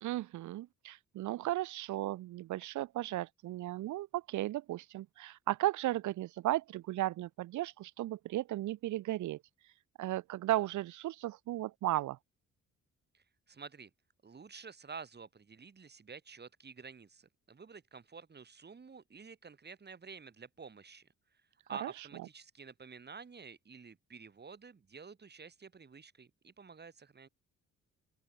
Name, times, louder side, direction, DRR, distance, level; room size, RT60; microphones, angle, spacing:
voice 1, 0.0-9.4 10.0-12.2 21.8-21.9, right 15 dB, 75° right, 0.8 m, -35 dB
voice 2, 13.1-13.9 14.2-21.1 21.7-27.3, right 5 dB, 35° right, 3.4 m, -50 dB
open air
cardioid pair, 90°, 30 cm